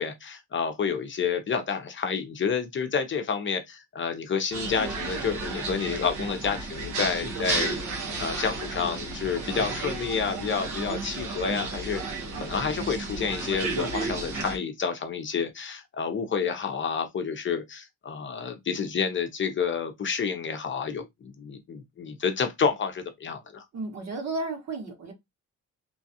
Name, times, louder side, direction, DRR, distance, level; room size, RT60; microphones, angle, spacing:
voice 1, 0.0-12.0 12.3-23.6, left 6 dB, 40° left, 0.7 m, -29 dB
sound 1, 4.5-14.6, right 3 dB, 75° right, 1.1 m, -32 dB
voice 2, 23.7-25.1, right 3 dB, 60° right, 1.6 m, -33 dB
3.1 x 2.3 x 2.7 m
cardioid pair, 90°, 30 cm